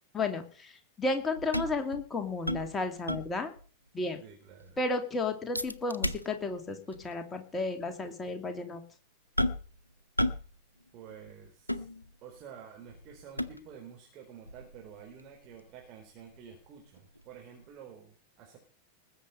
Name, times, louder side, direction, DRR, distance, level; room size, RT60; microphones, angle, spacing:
voice 1, 0.1-3.5 3.9-4.2 4.8-8.8, left 3 dB, 15° left, 5 dB, 2.6 m, -33 dB
sound 1, 1.4-3.7 4.0-4.1 4.5-4.9 5.5-6.6 6.9-7.1 7.8-7.9 9.4-9.8 10.2-10.6 10.8-12.4 12.9-13.9 14.5-17.2 17.6-17.7, left 1 dB, 85° left, 0.9 m, -35 dB
voice 2, 4.2-4.8 10.9-11.9 12.2-18.6, right 8 dB, 40° right, 1 dB, 4.0 m, -50 dB
20.0 x 8.1 x 5.5 m, 0.41 s
figure-of-eight pair, 90°, 0 cm